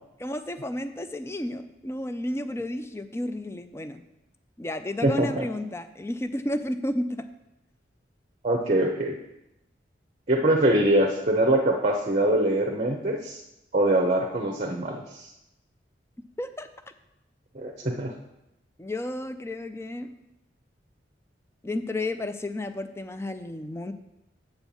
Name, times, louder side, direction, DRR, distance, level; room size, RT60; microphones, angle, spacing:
voice 1, 0.2-4.0 4.6-7.3 16.4-16.7 17.8-18.0 18.8-20.1 21.6-23.9, left 1 dB, 15° left, 9 dB, 0.4 m, -32 dB
voice 2, 5.0-5.4 8.4-9.2 10.3-13.4 13.7-15.3 17.5-18.1, right 1 dB, 40° right, 1 dB, 0.8 m, -23 dB
7.8 x 4.5 x 7.0 m, 0.89 s
head